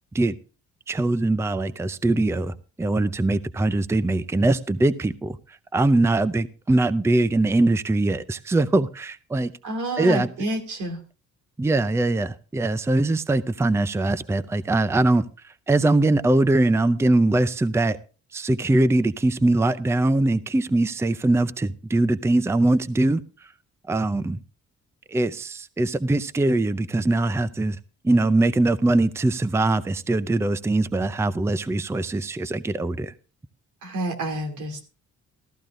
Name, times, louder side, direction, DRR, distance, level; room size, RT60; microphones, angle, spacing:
voice 1, 0.9-9.5 10.0-10.3 11.6-18.0 18.3-23.2 23.9-24.4 25.1-27.8 28.0-33.1, right 2 dB, 10° right, 0.5 m, -22 dB
voice 2, 9.6-11.0 33.8-34.8, right 1 dB, 85° right, 2.6 m, -29 dB
14.5 x 14.0 x 2.5 m
cardioid pair, 90°, 30 cm